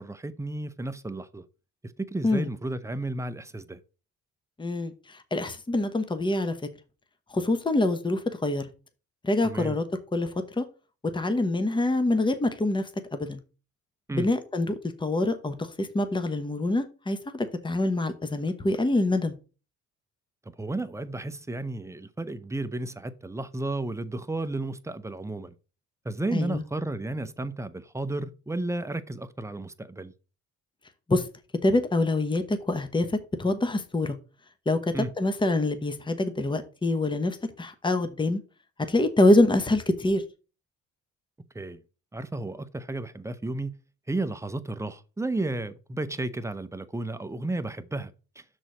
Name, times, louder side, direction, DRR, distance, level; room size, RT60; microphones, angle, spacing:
voice 1, 0.0-1.4 1.8-3.8 9.4-9.8 14.1-14.3 20.6-25.5 26.0-30.1 34.9-35.1 41.5-41.8 42.1-43.7 44.1-48.4, right 2 dB, 10° right, 0.7 m, -33 dB
voice 2, 4.6-6.6 7.3-8.7 9.2-9.8 10.1-10.3 10.6-10.7 11.1-13.4 14.1-19.3 26.3-26.6 31.1-31.2 31.6-34.2 34.7-38.4 38.9-40.2, left 2 dB, 15° left, 1.0 m, -25 dB
6.2 x 4.1 x 6.2 m
cardioid pair, 90°, 30 cm